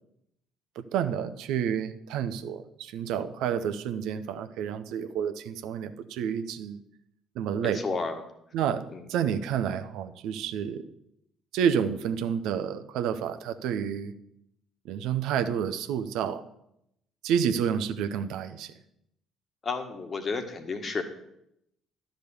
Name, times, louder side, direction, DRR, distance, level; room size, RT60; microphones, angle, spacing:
voice 1, 0.9-6.8 7.3-7.8 8.5-10.9 11.5-14.1 14.8-16.4 17.2-18.7, right 8 dB, 65° right, 10 dB, 0.7 m, -29 dB
voice 2, 7.6-8.2 8.9-9.0 19.6-21.0, left 4 dB, 40° left, 7 dB, 1.7 m, -32 dB
12.0 x 5.2 x 6.9 m, 0.78 s
hypercardioid pair, 50°, 0 cm